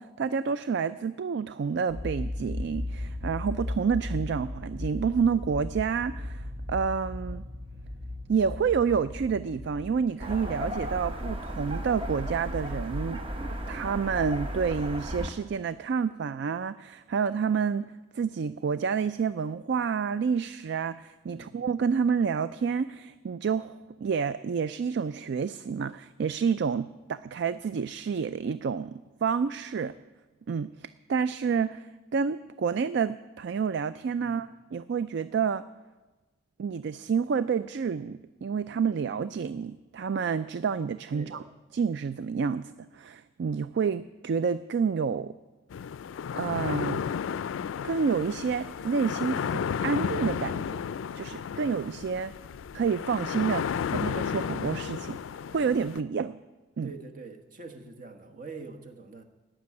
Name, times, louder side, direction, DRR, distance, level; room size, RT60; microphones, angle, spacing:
voice 1, 0.0-7.4 8.3-13.2 13.7-17.8 18.1-29.9 30.5-35.6 36.6-41.4 41.7-45.3 46.4-47.0 47.8-50.8 51.1-52.3 52.7-55.2 55.5-56.4 56.8-56.9, right 6 dB, 60° right, 14 dB, 0.3 m, -29 dB
sound 1, 1.9-9.9, left 1 dB, 80° right, 2.7 m, -36 dB
sound 2, 10.2-15.3, equal, 30° right, 1.0 m, -34 dB
voice 2, 34.2-34.5 41.1-41.5 56.8-59.2, right 3 dB, 45° right, 6 dB, 1.4 m, -44 dB
sound 3, 45.7-56.0, left 7 dB, 85° left, 0.3 m, -33 dB
17.0 x 6.2 x 9.5 m, 1.2 s
head